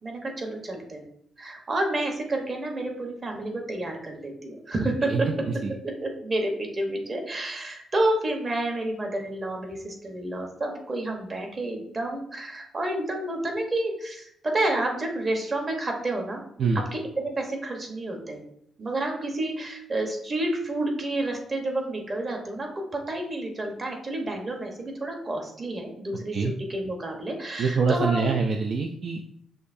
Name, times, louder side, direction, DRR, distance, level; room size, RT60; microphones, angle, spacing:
voice 1, 0.0-1.0 1.4-5.3 5.8-16.4 16.7-18.4 18.8-28.3, right 1 dB, 35° right, 2 dB, 1.0 m, -30 dB
voice 2, 27.6-29.2, right 4 dB, 55° right, 4 dB, 0.3 m, -25 dB
6.5 x 2.7 x 2.6 m, 0.70 s
cardioid pair, 100°, 0 cm